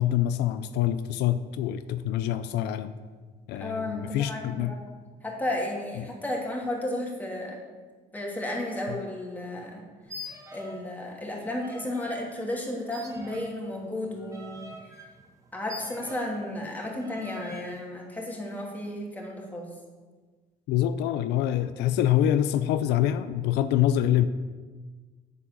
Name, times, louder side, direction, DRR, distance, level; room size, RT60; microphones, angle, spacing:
voice 1, 0.0-2.9 3.5-4.7 6.0-6.1 8.9-9.0 20.7-24.3, left 11 dB, 85° left, 12 dB, 0.5 m, -25 dB
voice 2, 3.6-4.8 5.2-7.6 8.1-9.8 10.5-14.6 15.5-19.7, left 1 dB, 10° left, -2 dB, 2.7 m, -33 dB
sound 1, 10.0-10.9 11.2-12.2 12.9-16.5 17.0-17.7, left 1 dB, 20° right, 1.5 m, -44 dB
8.6 x 7.5 x 6.6 m, 1.4 s
cardioid pair, 110°, 17 cm